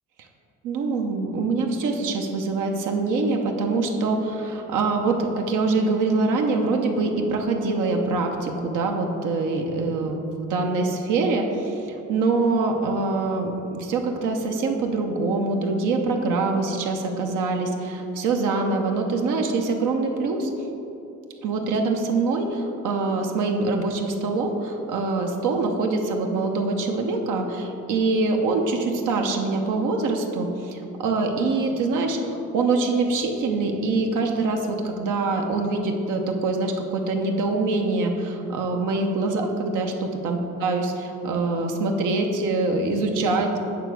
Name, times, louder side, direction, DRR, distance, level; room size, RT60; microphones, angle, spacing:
voice 1, 0.6-20.5 21.4-43.6, right 3 dB, 85° right, 2 dB, 0.8 m, -24 dB
8.7 x 3.4 x 6.1 m, 2.9 s
cardioid pair, 90°, 30 cm